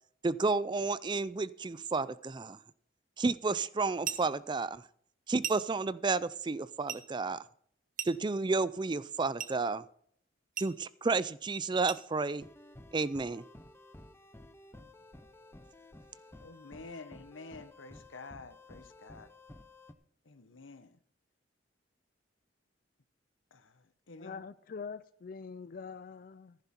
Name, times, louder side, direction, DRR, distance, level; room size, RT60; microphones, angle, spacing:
voice 1, 0.2-2.6 3.2-4.8 5.3-7.4 8.1-9.8 10.6-12.5 12.9-13.4, right 3 dB, 25° right, 0.4 m, -31 dB
sound 1, 4.0-4.4 5.4-5.8 6.9-7.1 8.0-8.4 9.4-9.6 10.6-10.8 11.9-12.1, right 9 dB, 45° right, 1.1 m, -39 dB
sound 2, 12.4-19.9, left 1 dB, 15° left, 0.8 m, -54 dB
voice 2, 16.4-19.3 20.2-21.0 23.5-24.4, left 3 dB, 90° left, 1.1 m, -49 dB
voice 3, 24.2-26.6, left 5 dB, 50° left, 0.4 m, -44 dB
14.5 x 11.0 x 4.4 m
head